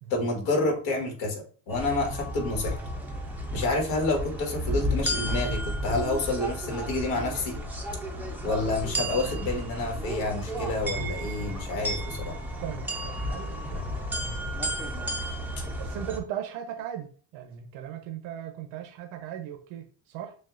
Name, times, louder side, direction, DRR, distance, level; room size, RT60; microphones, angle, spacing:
voice 1, 0.1-2.8 3.5-7.6 8.4-12.3, left 2 dB, 75° left, 1.6 m, -29 dB
sound 1, 1.7-16.2, equal, 5° right, 0.4 m, -32 dB
voice 2, 12.6-14.6 15.8-20.4, right 10 dB, 90° right, 0.7 m, -38 dB
6.3 x 2.3 x 2.4 m
cardioid pair, 150°, 46 cm